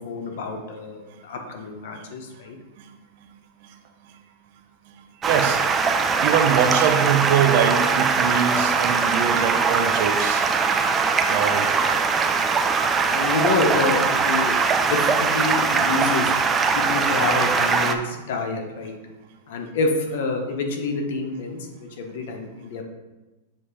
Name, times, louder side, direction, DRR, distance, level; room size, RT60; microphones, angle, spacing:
voice 1, 0.0-2.6 13.1-14.6 14.9-16.4 16.7-19.0 19.5-22.8, left 3 dB, 70° left, 3 dB, 1.1 m, -27 dB
Stream, 5.2-17.9, right 5 dB, 20° right, 0.4 m, -21 dB
voice 2, 5.3-5.8 6.2-10.4 11.3-11.8, right 8 dB, 60° right, 7 dB, 0.7 m, -23 dB
7.2 x 2.8 x 5.0 m, 1.1 s
hypercardioid pair, 130°, 0 cm